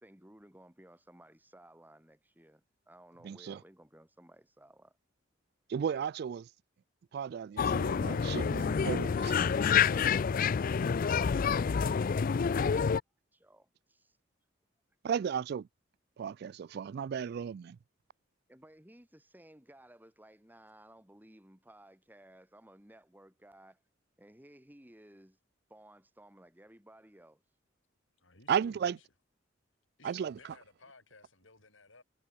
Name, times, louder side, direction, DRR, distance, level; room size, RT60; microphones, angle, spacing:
voice 1, 0.0-5.0 13.3-14.2 18.5-23.8 24.2-25.4 25.7-27.4, right 1 dB, 10° right, 2.6 m, -57 dB
voice 2, 3.2-3.6 5.7-6.5 7.1-9.4 15.0-15.7 16.2-17.8 28.5-29.0 30.0-30.4, right 7 dB, 55° right, 0.3 m, -34 dB
sound 1, 7.6-13.0, left 6 dB, 45° left, 0.4 m, -28 dB
voice 3, 28.2-29.1 30.0-32.0, left 3 dB, 85° left, 7.3 m, -59 dB
head